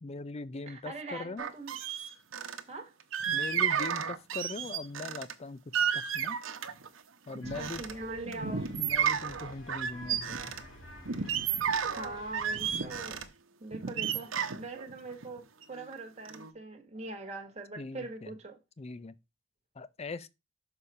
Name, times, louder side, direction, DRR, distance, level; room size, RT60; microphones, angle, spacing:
voice 1, 0.0-1.4 3.3-6.4 7.3-7.8 8.2-10.5 17.8-18.3 18.8-19.1 19.8-20.3, left 3 dB, 30° left, 0.5 m, -41 dB
voice 2, 0.7-1.8 2.7-3.0 7.4-8.7 11.9-13.2 13.6-18.6, right 2 dB, 35° right, 1.4 m, -42 dB
sound 1, 1.4-2.6 3.1-5.3 5.7-6.9 7.3-7.9 8.3-10.6 11.1-13.2 13.7-15.9 16.2-16.5, right 8 dB, 85° right, 0.9 m, -32 dB
sound 2, 7.4-13.3, equal, 75° left, 2.6 m, -50 dB
6.5 x 4.2 x 5.4 m
head